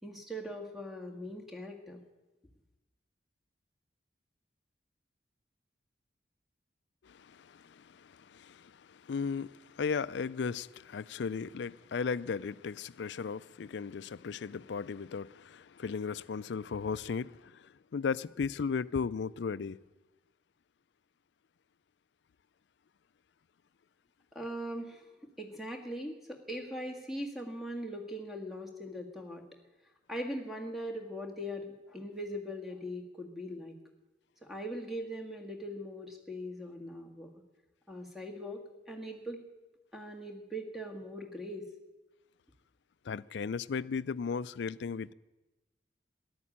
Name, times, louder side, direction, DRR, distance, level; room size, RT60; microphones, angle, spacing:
voice 1, 0.0-2.0 24.3-29.5 30.1-33.8 34.4-37.3 37.9-39.4 39.9-41.6, equal, ahead, 1.8 m, -41 dB
voice 2, 7.0-19.8 43.1-45.1, left 5 dB, 75° left, 0.4 m, -36 dB
13.5 x 11.0 x 8.6 m
head